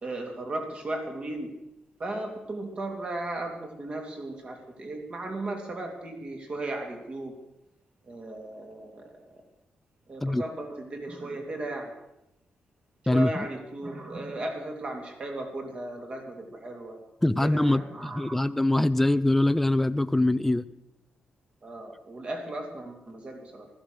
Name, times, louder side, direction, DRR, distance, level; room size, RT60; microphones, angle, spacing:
voice 1, 0.0-1.5 2.0-7.3 8.1-9.4 10.1-11.9 13.0-17.0 17.4-18.5 21.6-23.7, right 2 dB, 40° right, 3 dB, 3.2 m, -36 dB
voice 2, 13.1-13.5 17.2-20.6, left 1 dB, 5° left, 13 dB, 0.5 m, -23 dB
15.5 x 13.5 x 6.5 m, 0.87 s
cardioid pair, 125°, 3 cm